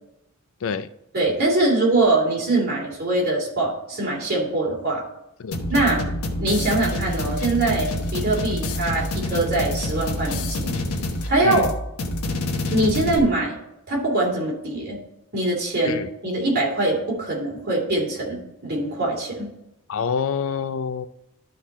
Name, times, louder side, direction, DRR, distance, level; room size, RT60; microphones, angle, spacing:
voice 1, 1.1-5.0 5.7-6.0 6.4-10.7 11.3-11.6 12.7-13.6 13.9-15.0 15.3-19.5, right 2 dB, 45° right, -3 dB, 2.9 m, -23 dB
sound 1, 5.5-13.2, left 1 dB, 85° left, 1.1 m, -27 dB
voice 2, 11.4-11.7 15.8-16.1 19.9-21.1, left 6 dB, 65° left, 14 dB, 0.4 m, -26 dB
12.0 x 4.0 x 4.2 m, 0.85 s
head